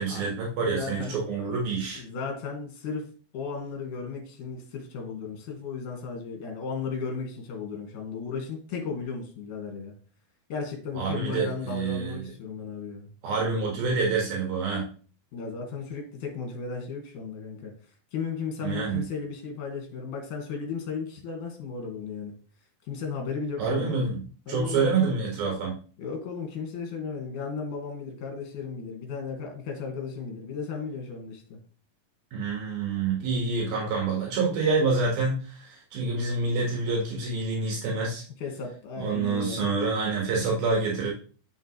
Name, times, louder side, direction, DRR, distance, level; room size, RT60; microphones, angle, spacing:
voice 1, 0.0-2.0 11.0-12.3 13.2-14.9 18.6-19.1 23.6-25.8 32.3-38.2 39.0-41.1, right 4 dB, 75° right, -2 dB, 3.7 m, -27 dB
voice 2, 0.6-1.2 1.9-3.1 3.3-9.9 10.5-13.1 15.3-17.7 18.1-22.3 22.9-24.1 24.5-24.9 26.0-31.6 38.4-39.7, left 5 dB, 60° left, 2 dB, 3.2 m, -35 dB
8.1 x 7.0 x 3.2 m, 0.40 s
omnidirectional pair, 4.3 m